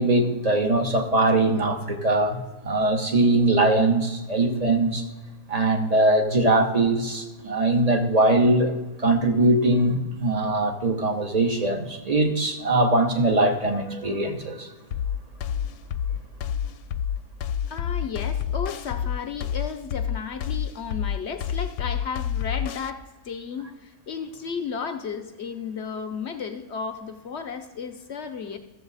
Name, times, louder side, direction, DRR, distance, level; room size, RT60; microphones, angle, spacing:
voice 1, 0.0-5.1 5.5-8.7 9.0-14.7, right 2 dB, 30° right, 5 dB, 0.8 m, -21 dB
sound 1, 14.9-22.9, left 8 dB, 85° left, 1.1 m, -28 dB
voice 2, 17.7-28.6, left 6 dB, 55° left, 7 dB, 0.8 m, -34 dB
14.0 x 7.3 x 4.0 m, 1.2 s
omnidirectional pair, 1.7 m